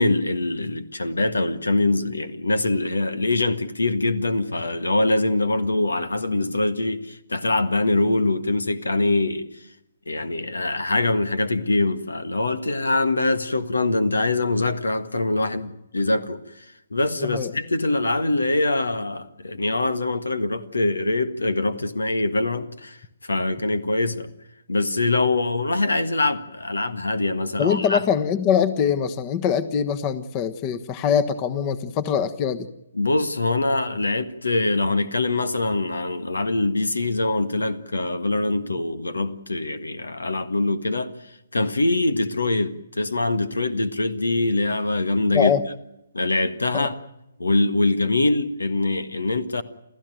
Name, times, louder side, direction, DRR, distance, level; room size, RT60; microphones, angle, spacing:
voice 1, 0.0-9.4 10.1-16.4 16.9-24.3 24.7-28.0 33.0-41.1 41.5-45.5 46.1-47.0 47.4-49.6, left 2 dB, 85° left, 1.7 m, -23 dB
voice 2, 17.2-17.5 27.6-32.7 45.3-45.6 46.7-46.9, left 7 dB, 30° left, 1.3 m, -23 dB
29.0 x 14.5 x 9.2 m
figure-of-eight pair, 140°, 0 cm